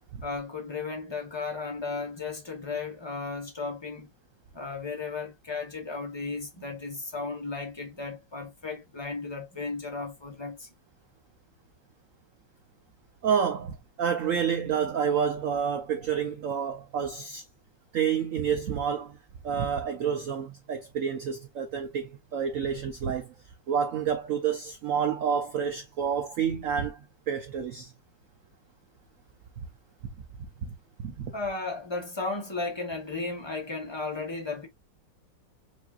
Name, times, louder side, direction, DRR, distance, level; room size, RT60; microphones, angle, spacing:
voice 1, 0.2-4.1 4.5-10.7 31.3-34.7, left 3 dB, 25° left, 0.6 m, -35 dB
voice 2, 13.2-17.4 17.9-19.2 19.4-23.3 23.7-27.0 27.3-27.9 30.6-30.7 31.0-31.3, right 7 dB, 85° right, 0.7 m, -29 dB
5.2 x 2.7 x 2.4 m
omnidirectional pair, 2.1 m